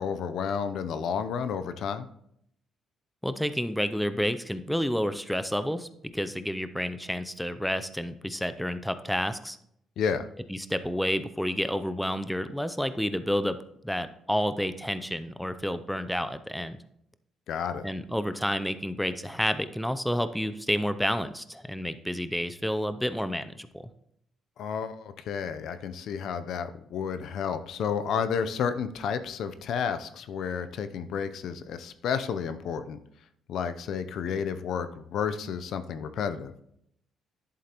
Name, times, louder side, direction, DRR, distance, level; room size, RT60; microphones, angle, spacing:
voice 1, 0.0-2.1 10.0-10.3 17.5-17.8 24.6-33.0 33.5-36.5, left 7 dB, 70° left, 11 dB, 0.6 m, -31 dB
voice 2, 3.2-9.6 10.5-13.6 13.8-16.8 17.8-23.9, equal, ahead, 12 dB, 0.5 m, -30 dB
11.0 x 7.5 x 3.0 m, 0.73 s
cardioid pair, 110°, 0 cm